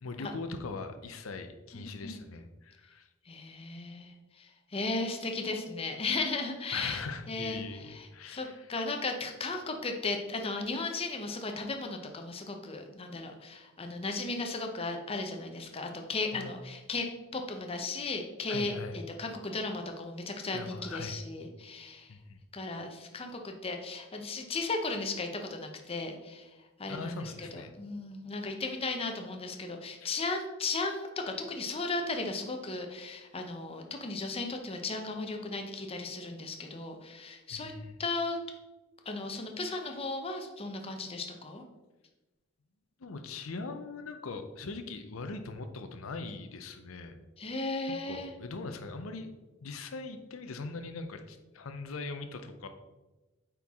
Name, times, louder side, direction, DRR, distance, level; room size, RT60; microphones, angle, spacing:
voice 1, 0.0-3.1 6.7-8.7 16.3-16.6 18.5-19.0 19.5-19.7 20.5-21.2 22.1-22.4 26.9-27.7 30.0-30.2 37.5-37.9 39.8-40.0 43.0-47.2 47.9-49.3 49.6-52.7, left 3 dB, 85° left, 7 dB, 0.6 m, -41 dB
voice 2, 1.7-2.2 3.3-7.6 7.9-17.1 17.3-22.1 22.5-26.5 26.8-37.7 38.0-38.4 39.1-41.6 47.4-48.3, left 3 dB, 30° left, 4 dB, 0.7 m, -36 dB
8.1 x 4.6 x 3.6 m, 1.1 s
head